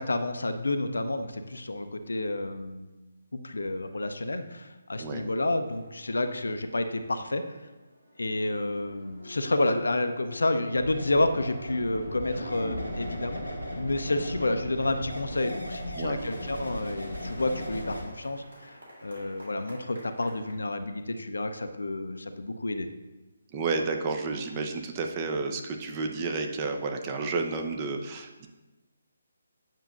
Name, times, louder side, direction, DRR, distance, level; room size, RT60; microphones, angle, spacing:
voice 1, 0.0-2.9 3.3-7.4 8.2-13.4 13.7-22.9, left 2 dB, 65° left, 8 dB, 0.5 m, -30 dB
sound 1, 5.2-20.5, left 1 dB, 70° right, 2.0 m, -50 dB
sound 2, 10.7-18.0, equal, 90° right, 1.6 m, -37 dB
voice 2, 23.5-28.5, right 4 dB, 25° right, 3 dB, 0.6 m, -31 dB
9.0 x 5.4 x 2.5 m, 1.1 s
figure-of-eight pair, 145°, 0 cm